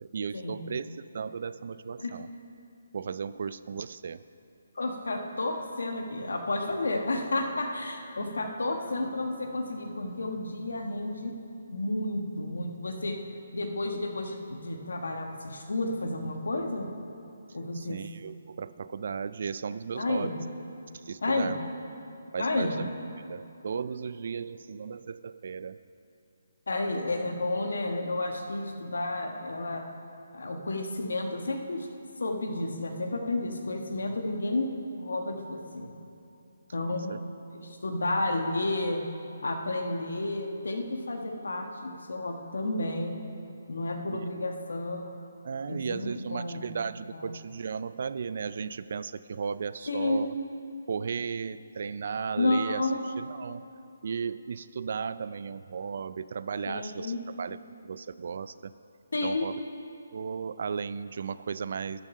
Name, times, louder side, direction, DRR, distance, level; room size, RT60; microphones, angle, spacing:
voice 1, 0.0-2.3 2.9-4.2 8.2-8.5 17.7-20.4 20.9-21.6 22.3-22.9 23.3-25.8 36.9-37.2 44.1-44.3 45.4-50.4 50.9-52.9 53.2-53.7 54.0-57.6 57.8-58.7 59.2-59.6 60.1-62.0, right 6 dB, 55° right, 15 dB, 0.3 m, -35 dB
voice 2, 4.7-11.3 11.7-13.2 13.5-16.9 17.5-18.0 20.0-20.3 21.2-21.5 22.4-22.7 26.7-29.8 30.3-31.9 32.2-34.7 35.0-35.9 36.7-37.2 37.5-39.0 39.4-43.2 43.7-45.1 45.7-46.7 47.1-47.2 49.9-50.3 52.4-53.0 56.7-57.2 59.1-59.5, left 2 dB, 85° left, 4 dB, 1.3 m, -31 dB
11.5 x 7.4 x 5.4 m, 2.8 s
hypercardioid pair, 160°, 0 cm